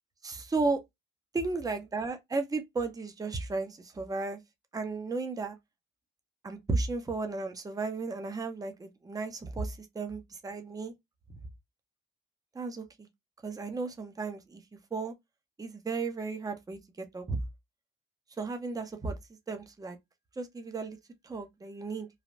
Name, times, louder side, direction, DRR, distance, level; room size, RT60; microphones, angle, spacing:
voice 1, 0.2-0.8 1.3-4.4 4.7-5.6 6.4-10.9 12.5-13.1 13.4-14.6 14.9-15.1 15.6-17.4 18.4-19.2 19.5-20.0 20.4-21.0 21.2-22.1, right 3 dB, 20° right, 0.7 m, -34 dB
3.2 x 2.1 x 2.5 m
cardioid pair, 90°, 20 cm